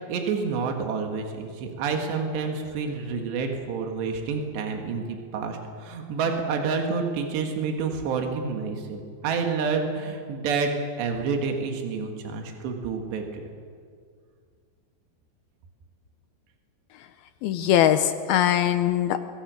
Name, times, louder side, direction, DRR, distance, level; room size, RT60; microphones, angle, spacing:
voice 1, 0.1-5.0 5.3-10.7 11.0-13.4, right 5 dB, 80° right, 3 dB, 4.0 m, -28 dB
voice 2, 17.4-19.2, left 11 dB, 75° left, 10 dB, 2.4 m, -21 dB
24.5 x 22.5 x 6.4 m, 2.1 s
omnidirectional pair, 4.9 m